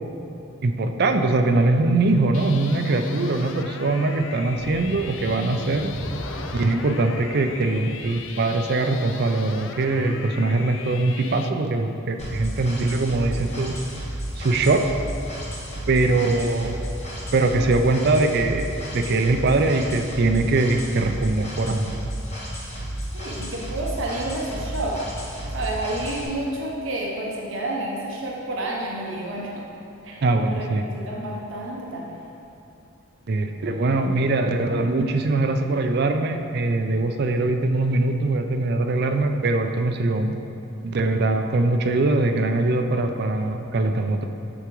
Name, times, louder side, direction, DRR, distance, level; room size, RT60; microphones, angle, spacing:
voice 1, 0.6-5.9 6.5-13.8 14.4-14.9 15.9-16.7 17.3-21.9 30.2-30.8 33.3-40.3 40.8-44.2, right 2 dB, 50° right, 6 dB, 0.4 m, -22 dB
sound 1, 2.3-11.5, left 6 dB, 65° left, 0.4 m, -39 dB
sound 2, 4.5-9.8, equal, 90° left, 1.0 m, -38 dB
sound 3, 12.2-26.2, equal, 35° left, 1.2 m, -32 dB
voice 2, 23.1-25.0 25.5-29.7 30.0-30.2 30.5-32.2, right 1 dB, 65° right, -2 dB, 0.8 m, -30 dB
8.1 x 5.9 x 3.0 m, 2.7 s
head